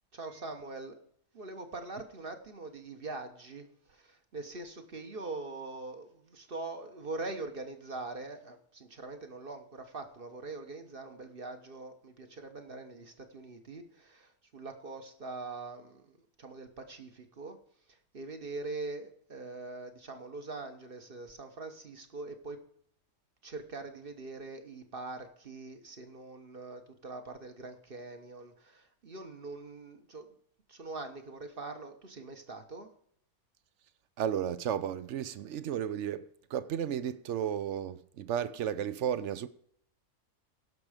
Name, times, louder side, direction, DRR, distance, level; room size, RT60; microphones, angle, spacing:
voice 1, 0.1-1.0 1.3-17.6 17.9-22.6 23.4-30.4 30.7-32.9, right 3 dB, 40° right, 1.2 m, -43 dB
voice 2, 34.2-39.5, right 9 dB, 60° right, 0.9 m, -33 dB
16.0 x 6.1 x 5.0 m
omnidirectional pair, 1.6 m